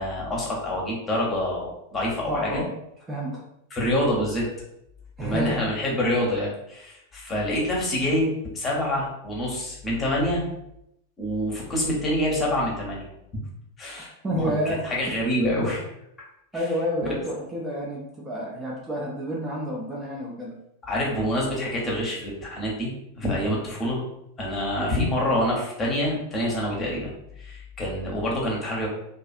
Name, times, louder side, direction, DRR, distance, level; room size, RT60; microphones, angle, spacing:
voice 1, 0.0-2.6 3.7-4.5 5.2-10.4 11.2-13.1 13.8-14.1 14.3-15.8 16.2-16.3 17.0-17.2 20.8-22.9 23.2-24.0 24.4-27.1 27.4-28.9, left 1 dB, 20° left, -3 dB, 0.9 m, -26 dB
voice 2, 2.3-2.7 3.1-3.4 5.2-5.6 14.0-14.9 16.5-20.6 24.8-24.9, equal, 15° right, -4 dB, 0.5 m, -29 dB
2.4 x 2.4 x 2.4 m, 0.80 s
figure-of-eight pair, 90°, 0 cm